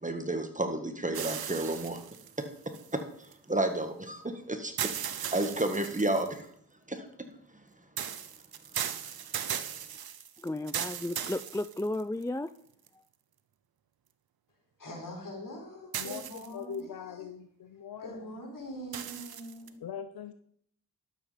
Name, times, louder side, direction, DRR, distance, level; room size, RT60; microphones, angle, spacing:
voice 1, 0.0-2.0 2.4-2.5 2.9-3.0 3.5-6.5 6.9-7.1, right 1 dB, 20° right, 7 dB, 1.7 m, -31 dB
sound 1, 1.1-3.3 4.8-6.4 8.0-12.2 12.9-13.0 15.9-16.8 18.9-19.7, right 9 dB, 85° right, 0.8 m, -37 dB
voice 2, 10.4-12.5, left 1 dB, 10° left, 14 dB, 0.4 m, -33 dB
voice 3, 14.8-17.3 18.0-19.8, equal, 65° left, 0 dB, 4.3 m, -43 dB
voice 4, 16.5-18.3 19.8-20.3, left 7 dB, 80° left, 10 dB, 0.7 m, -41 dB
12.0 x 7.8 x 5.1 m, 0.66 s
cardioid pair, 50°, 36 cm